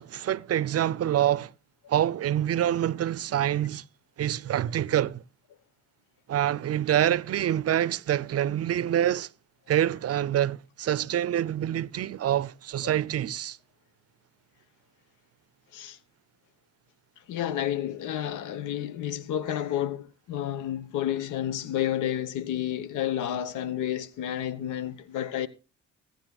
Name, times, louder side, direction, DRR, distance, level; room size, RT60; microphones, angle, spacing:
voice 1, 0.0-1.5 1.9-3.8 4.2-5.2 6.3-9.3 9.7-13.6, right 11 dB, 55° right, 0.6 m, -26 dB
voice 2, 17.3-25.5, left 11 dB, 85° left, 1.1 m, -30 dB
21.0 x 9.6 x 2.3 m
cardioid pair, 90°, 30 cm